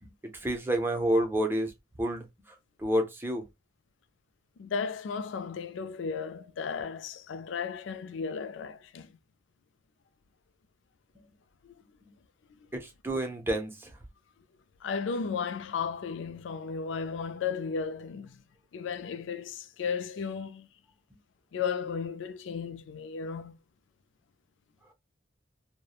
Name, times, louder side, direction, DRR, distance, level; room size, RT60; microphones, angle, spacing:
voice 1, 0.0-1.7 2.0-3.5 12.7-13.9, right 1 dB, 10° right, 0.5 m, -30 dB
voice 2, 4.6-9.1 11.6-11.7 14.8-18.4 18.7-20.7 21.5-23.6, left 6 dB, 90° left, 0.4 m, -34 dB
3.0 x 2.1 x 2.3 m
head